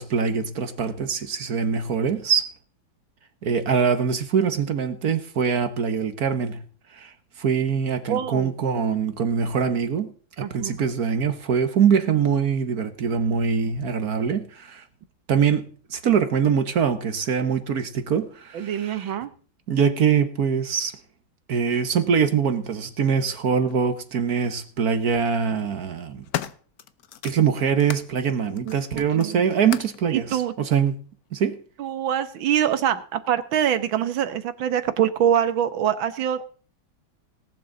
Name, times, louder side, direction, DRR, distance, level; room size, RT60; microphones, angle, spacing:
voice 1, 0.0-2.5 3.4-6.6 6.9-7.1 7.4-10.1 10.4-14.8 15.3-19.1 19.7-20.9 21.5-26.2 27.2-30.3 30.6-30.9 31.3-31.6, right 7 dB, 55° right, 1.4 m, -23 dB
voice 2, 8.1-8.5 10.4-10.7 18.5-19.3 28.7-29.4 30.1-30.5 31.8-36.4, right 10 dB, 80° right, 1.8 m, -24 dB
sound 1, 23.7-23.8 24.9-25.3 25.8-28.1 28.5-30.0 30.9-31.0, left 10 dB, 60° left, 1.1 m, -36 dB
18.0 x 11.5 x 3.9 m
omnidirectional pair, 2.1 m